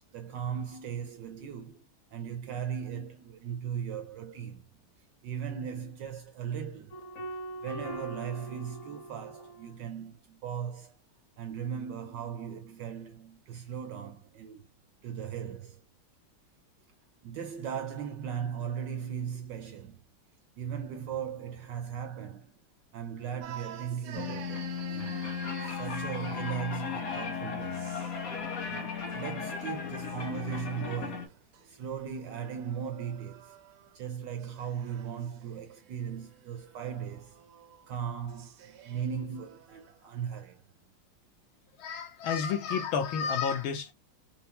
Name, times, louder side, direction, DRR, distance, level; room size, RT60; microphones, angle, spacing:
voice 1, 0.1-1.8 2.1-4.6 5.2-6.9 7.6-11.0 11.4-14.7 15.0-15.8 17.2-20.0 20.6-22.6 22.9-25.3 25.6-28.0 28.7-31.4 31.7-33.5 33.9-37.4 37.9-40.6, right 8 dB, 70° right, 1.1 m, -38 dB
sound 1, 6.9-9.8, right 1 dB, 40° left, 1.3 m, -41 dB
sound 2, 23.4-26.8 27.6-28.2 28.6-30.2 31.3-34.0 34.4-40.0, right 9 dB, 90° right, 1.7 m, -50 dB
sound 3, 24.1-31.3, left 6 dB, 55° left, 1.0 m, -36 dB
voice 2, 41.8-43.9, left 6 dB, 75° left, 1.6 m, -30 dB
4.5 x 2.0 x 2.9 m
omnidirectional pair, 2.4 m